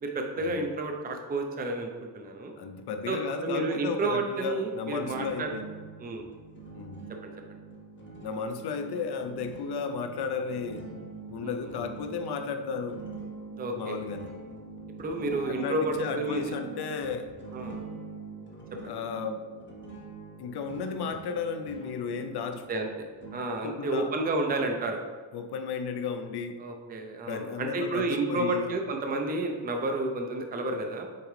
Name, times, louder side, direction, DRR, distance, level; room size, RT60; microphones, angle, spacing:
voice 1, 0.0-2.5 3.1-5.5 6.0-6.2 7.2-7.3 11.4-11.5 13.6-14.0 15.0-16.4 17.5-17.8 18.8-18.9 22.5-23.1 23.3-25.0 26.6-31.1, right 2 dB, 20° right, 3 dB, 0.5 m, -31 dB
voice 2, 2.6-5.7 6.7-7.1 8.2-10.9 11.3-13.0 13.8-14.3 15.5-17.3 18.8-19.5 20.4-22.7 23.6-24.1 25.3-26.7 27.3-28.7, left 5 dB, 55° left, 7 dB, 0.6 m, -34 dB
sound 1, 4.9-23.4, right 4 dB, 25° left, 0.9 m, -44 dB
8.2 x 3.8 x 3.2 m, 1.5 s
cardioid pair, 165°, 49 cm